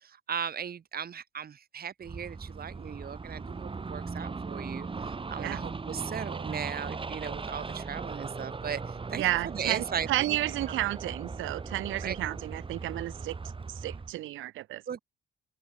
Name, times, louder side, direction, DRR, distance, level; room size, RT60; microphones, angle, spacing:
voice 1, 0.0-4.9 5.3-9.3 9.5-10.1 12.0-12.2 14.9-15.0, right 8 dB, 50° right, 2.6 m, -37 dB
sound 1, 2.0-14.1, right 4 dB, 25° right, 1.8 m, -38 dB
voice 2, 9.1-13.4 13.8-14.8, right 16 dB, 80° right, 0.7 m, -32 dB
open air
cardioid pair, 90°, 20 cm